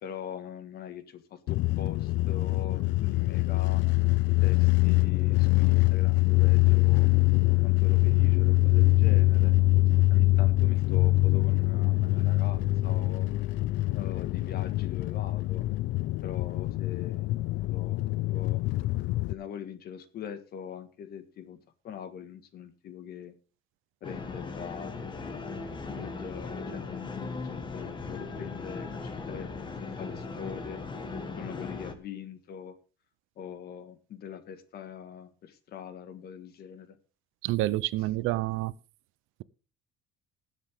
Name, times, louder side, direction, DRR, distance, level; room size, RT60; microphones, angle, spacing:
voice 1, 0.0-3.8 4.4-7.1 7.6-9.5 10.1-13.3 13.9-15.7 16.2-17.3 17.6-18.0 18.3-18.6 19.3-21.6 21.8-23.3 24.0-25.0 25.9-30.8 31.4-32.8 33.4-37.0, left 8 dB, 50° left, 1.6 m, -42 dB
sound 1, 1.5-19.3, left 21 dB, 65° left, 0.4 m, -24 dB
sound 2, 24.0-31.9, left 4 dB, 25° left, 1.4 m, -38 dB
voice 2, 37.4-38.7, right 17 dB, 85° right, 0.7 m, -28 dB
19.5 x 7.8 x 3.6 m
cardioid pair, 165°, 20 cm